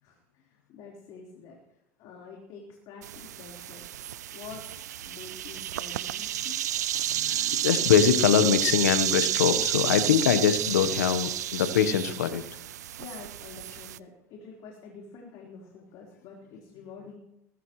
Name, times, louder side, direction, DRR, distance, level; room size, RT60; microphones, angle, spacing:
voice 1, 0.0-1.6 2.0-3.9 4.3-4.7 5.0-6.6 13.0-17.2, left 5 dB, 55° left, -2 dB, 4.3 m, -47 dB
sound 1, 3.0-14.0, right 12 dB, 90° right, 0.5 m, -30 dB
voice 2, 7.1-12.4, left 8 dB, 85° left, 11 dB, 1.2 m, -23 dB
21.5 x 13.5 x 3.2 m, 0.84 s
hypercardioid pair, 95°, 9 cm